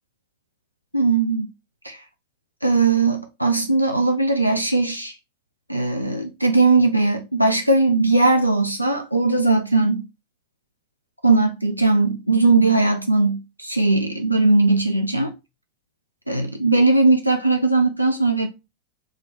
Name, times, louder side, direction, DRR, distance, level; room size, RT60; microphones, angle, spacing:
voice 1, 0.9-1.5 1.8-2.0 2.6-5.1 5.7-10.0 11.2-15.3 16.3-18.5, right 3 dB, 90° right, 0.3 m, -19 dB
3.4 x 2.2 x 3.2 m
figure-of-eight pair, 90°, 0 cm